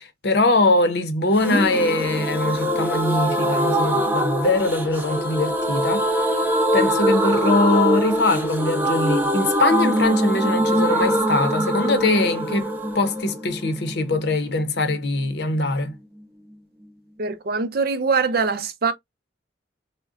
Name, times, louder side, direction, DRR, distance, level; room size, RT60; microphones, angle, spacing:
voice 1, 0.0-6.1 6.7-16.0, left 2 dB, 65° left, 0.7 m, -22 dB
sound 1, 1.4-15.0 15.2-15.3 15.6-15.7, right 1 dB, 10° right, 0.5 m, -23 dB
voice 2, 17.2-18.9, right 5 dB, 55° right, 0.5 m, -23 dB
3.7 x 2.1 x 2.3 m
head